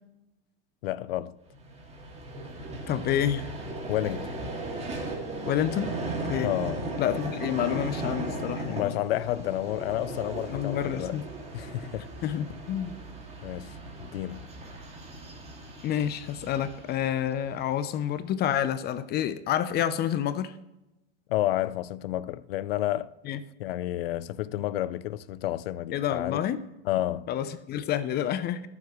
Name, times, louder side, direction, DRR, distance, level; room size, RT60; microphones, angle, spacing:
voice 1, 0.8-1.4 3.9-4.3 6.4-6.8 8.7-11.1 11.5-12.1 13.4-14.5 21.3-23.1 23.6-26.5 26.8-27.3, left 14 dB, 75° left, 0.6 m, -30 dB
Vehicle, 1.5-17.9, right 2 dB, 20° right, 2.4 m, -37 dB
voice 2, 2.9-3.5 5.5-5.9 6.3-6.5 7.0-9.0 10.5-11.2 12.2-12.9 15.8-20.5 23.2-23.4 25.9-26.6 27.3-28.7, left 10 dB, 35° left, 0.7 m, -28 dB
22.0 x 7.4 x 3.1 m
supercardioid pair, 120°, 30 cm